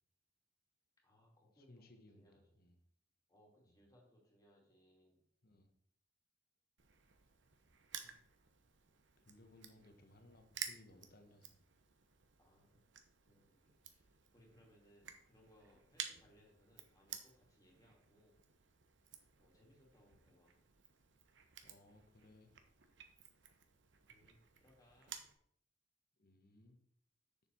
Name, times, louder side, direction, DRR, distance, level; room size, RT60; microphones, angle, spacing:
voice 1, 1.0-2.6 3.3-5.2 9.8-9.9 12.4-12.9 13.2-18.4 19.4-20.5 24.1-25.2, equal, 20° left, -2 dB, 2.5 m, -69 dB
voice 2, 1.6-2.7 3.7-3.8 5.4-5.7 8.0-8.2 9.2-11.6 21.6-22.5 26.2-26.8, left 1 dB, 55° left, 6 dB, 1.2 m, -63 dB
Crushing, 6.8-25.3, right 8 dB, 75° right, 0.9 m, -54 dB
7.0 x 6.8 x 4.5 m, 0.67 s
head